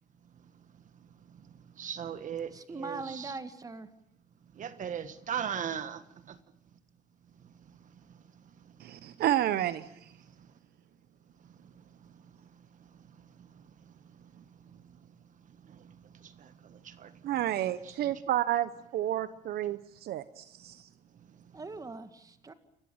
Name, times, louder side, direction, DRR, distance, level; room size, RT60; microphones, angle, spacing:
voice 1, 1.0-3.3 4.6-6.4 7.4-9.2 10.2-10.4 11.5-15.0 15.4-17.3 17.8-18.1 21.2-21.6, right 8 dB, 50° right, 12 dB, 1.5 m, -42 dB
voice 2, 2.5-3.9 21.5-22.5, right 3 dB, 20° right, 9 dB, 2.0 m, -41 dB
voice 3, 8.8-10.1 17.2-20.4, right 12 dB, 65° right, 13 dB, 0.9 m, -30 dB
29.0 x 15.0 x 8.8 m, 0.78 s
cardioid pair, 110°, 17 cm